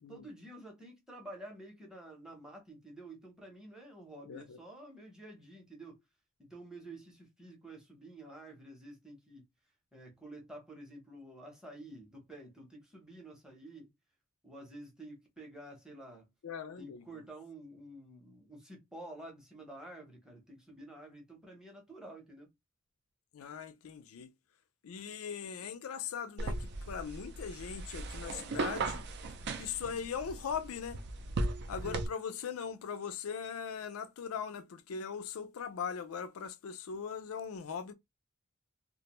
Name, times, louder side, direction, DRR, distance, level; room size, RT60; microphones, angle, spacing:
voice 1, 0.1-6.0 6.4-9.4 9.9-13.9 14.4-16.3 16.8-22.5, right 1 dB, 5° right, 0.7 m, -50 dB
voice 2, 4.2-4.6 16.4-17.2 23.3-24.3 24.8-29.0 29.6-31.0 31.7-37.9, left 7 dB, 85° left, 0.4 m, -40 dB
sound 1, 26.4-32.1, right 3 dB, 55° right, 0.4 m, -37 dB
2.5 x 2.1 x 2.9 m
head